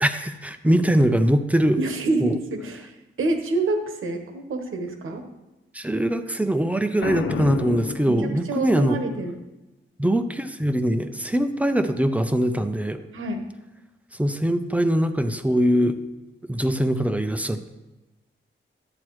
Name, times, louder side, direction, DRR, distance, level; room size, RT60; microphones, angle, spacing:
voice 1, 0.0-1.8 2.2-2.4 5.7-9.0 10.0-13.0 14.1-16.0 16.5-17.7, equal, 5° right, 8 dB, 0.4 m, -22 dB
voice 2, 1.8-5.2 8.0-9.4 13.1-13.4, right 2 dB, 85° right, 5 dB, 1.1 m, -27 dB
Boom, 7.0-8.8, left 6 dB, 85° left, 0.6 m, -30 dB
12.0 x 8.7 x 3.1 m, 1.1 s
wide cardioid pair, 180°, 20 cm